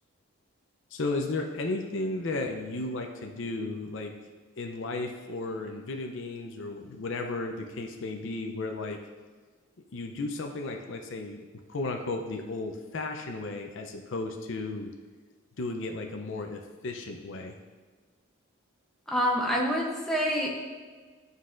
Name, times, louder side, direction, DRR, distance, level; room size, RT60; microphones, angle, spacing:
voice 1, 0.9-4.1 4.6-9.0 9.9-14.9 15.6-17.6, left 2 dB, 60° left, 4 dB, 0.6 m, -34 dB
voice 2, 19.1-20.5, equal, ahead, -3 dB, 0.7 m, -26 dB
11.5 x 4.0 x 2.5 m, 1.4 s
head